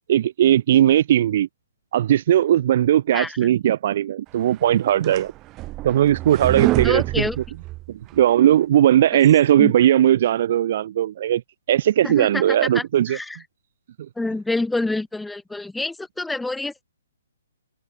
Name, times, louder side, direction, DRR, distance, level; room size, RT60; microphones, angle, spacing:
voice 1, 0.1-1.5 1.9-5.3 5.8-7.0 7.9-11.4 11.7-13.2, right 11 dB, 50° right, 0.3 m, -18 dB
sound 1, 4.6-8.2, right 18 dB, 25° right, 1.6 m, -27 dB
voice 2, 6.8-7.4 9.6-9.7 12.0-13.4 14.2-16.8, left 2 dB, 5° left, 3.1 m, -27 dB
hypercardioid pair, 135°, 0 cm